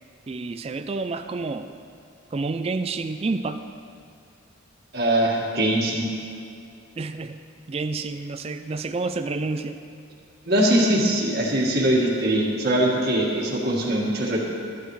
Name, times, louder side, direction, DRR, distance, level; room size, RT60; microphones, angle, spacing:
voice 1, 0.3-1.7 2.3-3.6 7.0-7.4 7.7-9.8, right 3 dB, 30° right, 8 dB, 0.3 m, -29 dB
voice 2, 4.9-6.0 10.4-14.4, right 1 dB, 45° right, -3 dB, 1.8 m, -22 dB
14.0 x 12.5 x 3.2 m, 2.5 s
head